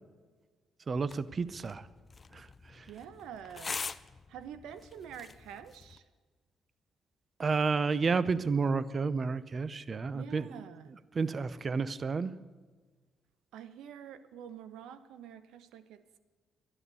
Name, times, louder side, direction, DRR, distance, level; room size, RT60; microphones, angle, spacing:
voice 1, 0.9-1.9 2.3-2.9 7.4-10.6 11.1-12.3, right 4 dB, 40° right, 17 dB, 0.7 m, -31 dB
sound 1, 1.0-6.0, left 4 dB, 35° left, 0.6 m, -44 dB
voice 2, 2.9-4.0 4.3-6.0 10.1-10.9 13.5-16.2, right 8 dB, 85° right, 13 dB, 0.9 m, -47 dB
12.5 x 11.0 x 8.3 m, 1.4 s
cardioid pair, 90°, 0 cm